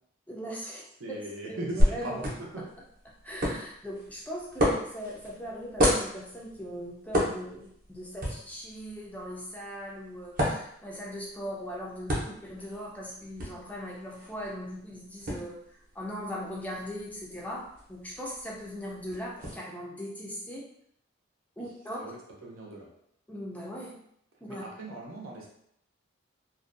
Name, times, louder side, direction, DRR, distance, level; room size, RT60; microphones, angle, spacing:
voice 1, 0.3-0.8 1.1-2.2 3.2-15.6 16.0-17.6 17.9-20.6 21.6-22.0 23.3-24.0 24.5-24.6, equal, 10° left, -3 dB, 0.3 m, -39 dB
voice 2, 1.0-2.6 12.2-12.3 22.0-22.9 24.5-25.5, right 1 dB, 85° right, -1 dB, 0.6 m, -39 dB
sound 1, 1.8-19.5, equal, 45° right, 0.6 m, -33 dB
2.5 x 2.1 x 2.5 m, 0.71 s
head